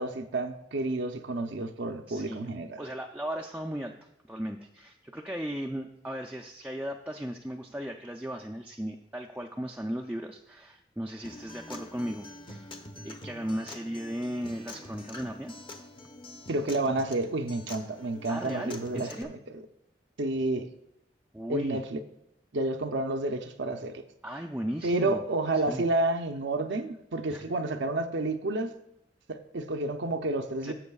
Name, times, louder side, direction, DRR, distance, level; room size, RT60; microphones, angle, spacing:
voice 1, 0.0-2.8 16.5-19.6 20.2-20.7 21.5-22.0 22.5-24.0 24.8-28.7 29.3-30.7, right 2 dB, 85° right, 0.7 m, -30 dB
voice 2, 2.1-2.5 2.8-3.9 4.3-12.7 13.0-15.5 18.3-19.3 21.3-21.8 24.2-25.2 25.5-25.8 27.3-27.5 30.6-30.7, equal, 5° right, 0.4 m, -36 dB
Acoustic guitar, 11.2-19.2, left 2 dB, 30° left, 0.8 m, -46 dB
15.0 x 7.0 x 2.4 m
head